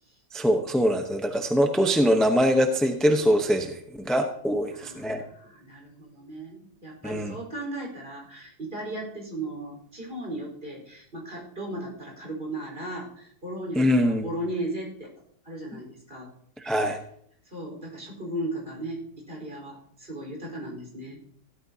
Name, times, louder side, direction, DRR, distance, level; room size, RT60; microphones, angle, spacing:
voice 1, 0.3-5.2 7.0-7.3 13.8-14.3 16.6-17.0, equal, ahead, 5 dB, 0.6 m, -23 dB
voice 2, 4.7-15.1 15.4-16.3 17.4-21.2, right 1 dB, 35° right, -1 dB, 4.8 m, -36 dB
16.5 x 13.0 x 2.8 m, 0.68 s
omnidirectional pair, 1.7 m